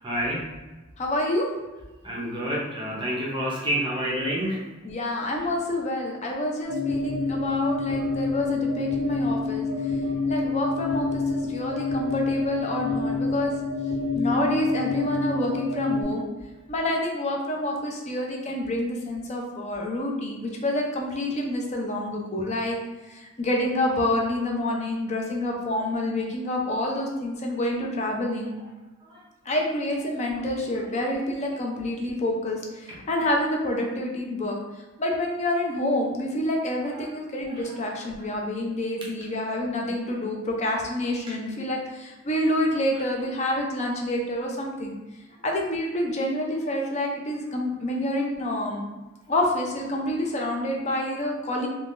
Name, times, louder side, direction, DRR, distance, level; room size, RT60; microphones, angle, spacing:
voice 1, 0.0-0.4 2.0-4.6 10.0-10.2 11.7-11.8 28.6-28.7 29.0-29.2 36.8-37.0 37.5-37.8 38.2-38.3, equal, 25° right, -4 dB, 0.6 m, -29 dB
voice 2, 1.0-1.5 4.8-9.7 10.3-13.5 14.1-16.3 16.7-22.8 23.1-28.6 29.5-34.6 35.0-45.0 45.4-48.9 49.3-51.7, left 1 dB, 35° left, 0 dB, 0.5 m, -28 dB
sound 1, 6.6-16.0, left 3 dB, 65° left, 1.1 m, -27 dB
3.4 x 2.3 x 2.5 m, 1.1 s
head